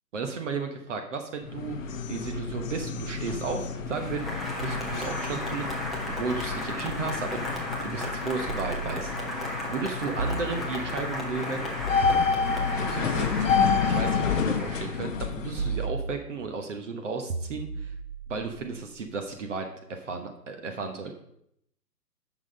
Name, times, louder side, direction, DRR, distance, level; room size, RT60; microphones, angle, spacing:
voice 1, 0.1-4.3 4.5-7.4 7.8-11.7 12.9-13.3 13.9-17.9 18.3-21.2, right 4 dB, 45° right, 5 dB, 1.2 m, -34 dB
sound 1, 1.4-15.8, left 5 dB, 50° left, 0.9 m, -30 dB
Applause, 3.9-15.4, left 1 dB, ahead, 0.4 m, -35 dB
sound 2, 4.6-7.4 8.5-9.5 10.2-11.3 12.0-14.3 15.6-16.7 17.3-19.5, right 4 dB, 70° right, 1.1 m, -37 dB
8.9 x 6.0 x 5.3 m, 0.75 s
hypercardioid pair, 150°, 50 cm